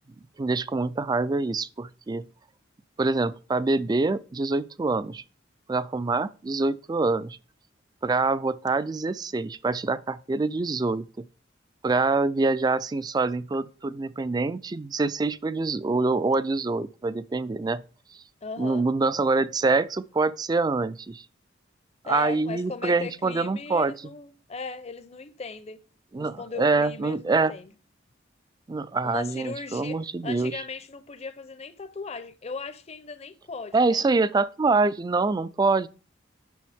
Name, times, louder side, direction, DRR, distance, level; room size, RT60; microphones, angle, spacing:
voice 1, 0.4-2.3 3.0-5.2 5.7-7.4 8.0-11.3 11.8-17.8 18.1-18.2 18.6-21.3 22.0-23.9 26.1-27.5 28.7-30.6 33.7-35.9, right 3 dB, 20° right, 0.3 m, -25 dB
voice 2, 18.4-18.8 22.0-25.8 26.2-27.7 29.0-30.0 30.2-34.0, left 4 dB, 35° left, 0.6 m, -37 dB
9.2 x 6.1 x 3.5 m
head